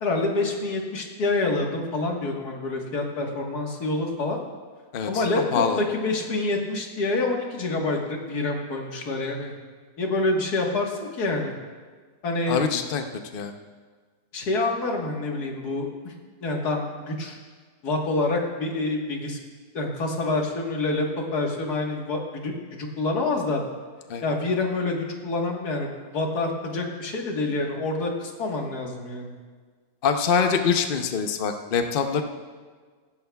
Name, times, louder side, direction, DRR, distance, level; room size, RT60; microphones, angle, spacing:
voice 1, 0.0-4.4 5.1-9.5 10.0-11.6 12.2-12.6 14.3-16.1 16.4-17.4 17.8-19.4 19.7-23.6 24.2-29.3, left 2 dB, 90° left, 1 dB, 2.0 m, -27 dB
voice 2, 4.9-5.8 12.5-13.0 13.3-13.5 24.1-24.2 30.0-32.2, left 6 dB, 45° left, 6 dB, 0.7 m, -24 dB
16.5 x 14.5 x 2.3 m, 1.5 s
omnidirectional pair, 1.6 m